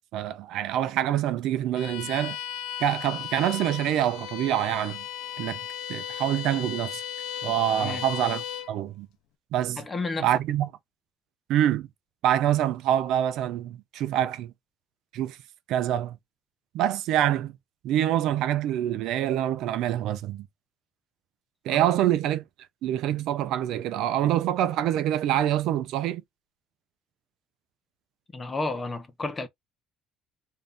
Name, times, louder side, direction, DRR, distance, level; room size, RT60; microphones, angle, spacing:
voice 1, 0.1-2.4 2.8-5.0 5.4-5.6 5.9-7.0 7.4-9.1 9.5-9.8 10.2-10.7 11.5-11.9 12.2-14.5 15.1-15.4 15.7-16.2 16.7-17.5 17.8-20.5 21.6-22.4 22.8-26.2, right 11 dB, 60° right, 0.5 m, -26 dB
Bowed string instrument, 1.7-8.8, left 9 dB, 80° left, 0.7 m, -36 dB
voice 2, 9.8-10.3 21.7-21.9 28.3-29.5, left 3 dB, 15° left, 0.6 m, -32 dB
3.5 x 2.7 x 3.6 m
cardioid pair, 175°, 0 cm